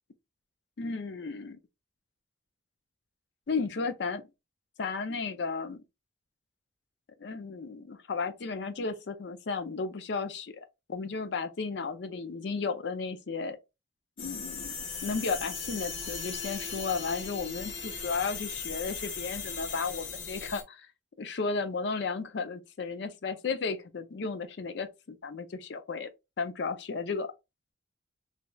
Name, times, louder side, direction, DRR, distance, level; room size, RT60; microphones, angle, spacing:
voice 1, 0.8-1.6 3.5-4.2 4.8-5.8 7.2-13.6 14.2-20.9 21.2-26.1 26.4-27.3, left 4 dB, 60° left, 0.4 m, -34 dB
sound 1, 14.2-20.6, left 5 dB, 85° left, 1.0 m, -38 dB
3.1 x 2.7 x 2.3 m
head